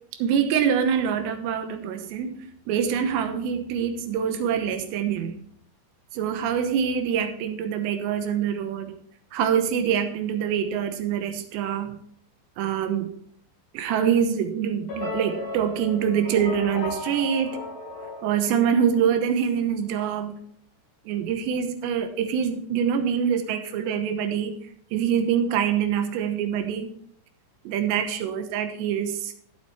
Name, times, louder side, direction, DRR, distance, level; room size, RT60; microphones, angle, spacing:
voice 1, 0.1-2.4 2.7-5.4 6.1-8.9 9.3-12.0 12.6-13.1 13.7-17.6 18.2-20.4 21.1-24.5 24.9-26.9 27.6-29.3, right 8 dB, 75° right, 7 dB, 3.1 m, -25 dB
sound 1, 14.9-19.2, left 3 dB, 50° left, 6.3 m, -35 dB
14.5 x 8.0 x 3.1 m, 0.64 s
omnidirectional pair, 5.3 m